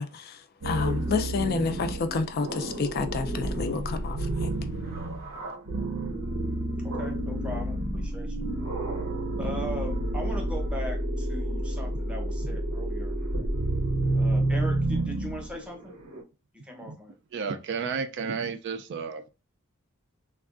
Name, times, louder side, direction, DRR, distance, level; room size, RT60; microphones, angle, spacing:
voice 1, 0.0-4.5, left 4 dB, 45° left, 0.3 m, -30 dB
sound 1, 0.6-16.2, right 1 dB, 90° right, 0.7 m, -30 dB
voice 2, 6.8-8.4 9.4-13.2 14.1-15.9 16.6-17.1, equal, 5° right, 0.7 m, -38 dB
voice 3, 17.3-19.2, right 5 dB, 55° right, 0.3 m, -32 dB
3.4 x 2.2 x 2.4 m
head